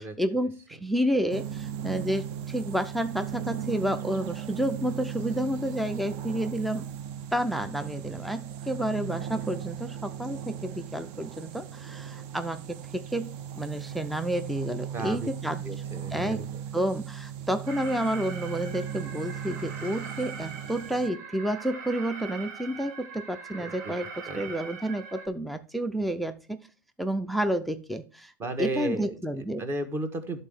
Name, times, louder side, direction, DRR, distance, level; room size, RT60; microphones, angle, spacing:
voice 1, 0.0-6.9 7.3-15.6 16.1-26.7 27.0-28.3 28.6-29.6, right 1 dB, ahead, 0.3 m, -30 dB
sound 1, 1.3-21.1, right 9 dB, 50° right, 0.6 m, -37 dB
voice 2, 14.9-15.3 15.6-16.6 23.6-23.9 24.3-24.4 28.4-30.4, right 2 dB, 25° right, 1.2 m, -34 dB
Alarm, 17.7-25.3, right 5 dB, 70° right, 1.2 m, -42 dB
11.0 x 4.0 x 3.6 m
supercardioid pair, 125°, 10 cm